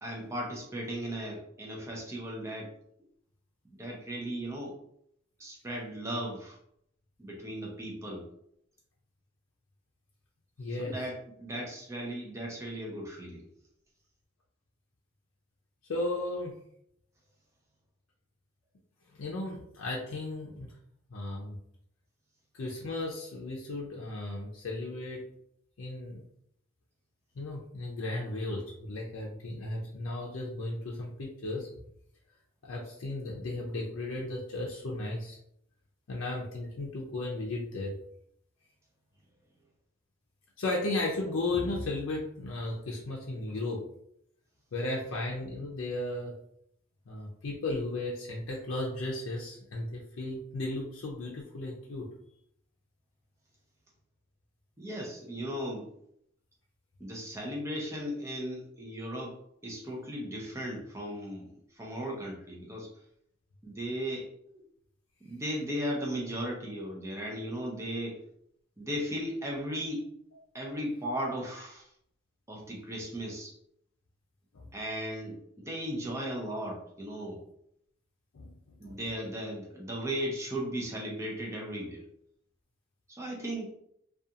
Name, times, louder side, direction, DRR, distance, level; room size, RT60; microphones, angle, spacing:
voice 1, 0.0-2.7 3.7-4.8 5.4-6.6 7.2-8.3 10.7-13.5 54.8-55.9 57.0-59.4 59.6-62.9 63.6-64.3 65.2-68.2 68.8-70.1 70.5-71.9 72.5-73.6 74.7-77.5 78.8-82.0 83.2-83.7, equal, 15° right, -1 dB, 0.5 m, -36 dB
voice 2, 10.6-10.9 15.9-16.5 19.2-20.7 21.1-21.6 22.6-25.2 25.8-26.2 27.4-31.7 32.6-35.4 36.1-37.9 40.6-43.8 44.7-46.3 47.1-52.1 74.5-74.7 78.3-78.5 78.8-79.0, left 2 dB, 90° left, -3 dB, 0.5 m, -35 dB
2.4 x 2.3 x 2.7 m, 0.73 s
head